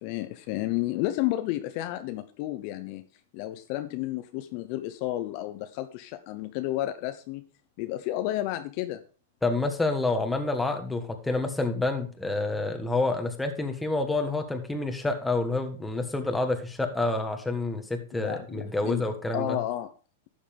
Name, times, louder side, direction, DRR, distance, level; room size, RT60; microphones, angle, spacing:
voice 1, 0.0-3.0 3.3-7.4 7.8-9.0 18.1-19.0 19.3-19.9, left 15 dB, 50° left, 9 dB, 0.7 m, -31 dB
voice 2, 9.4-19.6, left 2 dB, 5° left, 5 dB, 1.5 m, -28 dB
12.0 x 7.2 x 3.5 m, 0.38 s
hypercardioid pair, 135°, 0 cm